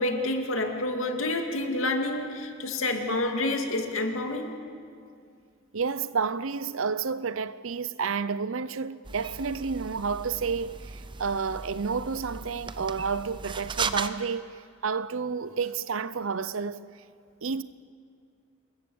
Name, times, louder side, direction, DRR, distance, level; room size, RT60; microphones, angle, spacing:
voice 1, 0.0-4.6, left 2 dB, 85° left, 2.5 m, -28 dB
voice 2, 5.7-14.5 14.8-16.8 17.4-17.6, right 5 dB, 80° right, 0.7 m, -30 dB
sound 1, 9.0-14.1, right 5 dB, 25° right, 0.7 m, -36 dB
27.5 x 22.0 x 7.1 m
head